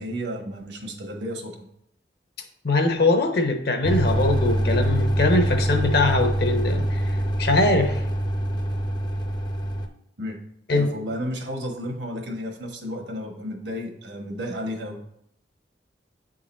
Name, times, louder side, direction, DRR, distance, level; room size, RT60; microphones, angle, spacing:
voice 1, 0.0-1.7 10.2-10.4 10.7-15.0, equal, 70° right, 3 dB, 1.3 m, -32 dB
voice 2, 2.6-7.1 7.4-8.0 10.7-10.9, left 2 dB, 55° left, 5 dB, 0.9 m, -22 dB
sound 1, 3.8-9.9, right 1 dB, 25° left, 0.6 m, -24 dB
8.2 x 3.8 x 4.2 m, 0.71 s
head